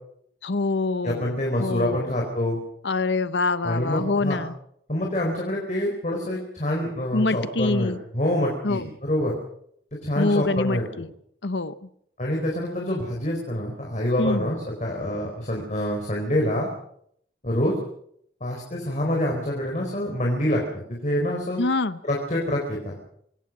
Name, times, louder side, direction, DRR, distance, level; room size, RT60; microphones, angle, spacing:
voice 1, 0.4-2.1 2.8-4.5 7.1-8.0 8.6-8.9 10.2-11.1 11.4-11.7 14.2-14.5 21.6-22.0, left 3 dB, 80° left, 15 dB, 0.9 m, -25 dB
voice 2, 1.0-2.6 3.6-4.4 4.9-9.3 10.0-10.8 12.2-16.7 17.4-17.7 18.4-21.6 22.1-22.9, left 1 dB, 40° left, -1 dB, 4.5 m, -26 dB
26.0 x 19.0 x 6.2 m, 0.70 s
head